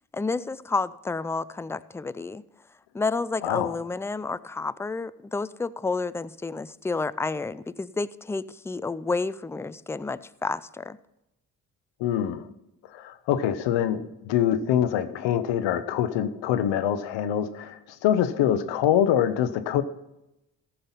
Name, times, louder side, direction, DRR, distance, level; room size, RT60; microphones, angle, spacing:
voice 1, 0.1-2.4 2.9-11.0, left 3 dB, 5° left, 16 dB, 0.3 m, -30 dB
voice 2, 3.4-3.7 12.0-12.4 12.9-19.8, left 10 dB, 85° left, 12 dB, 0.8 m, -25 dB
14.0 x 5.7 x 5.6 m, 0.90 s
supercardioid pair, 45°, 42 cm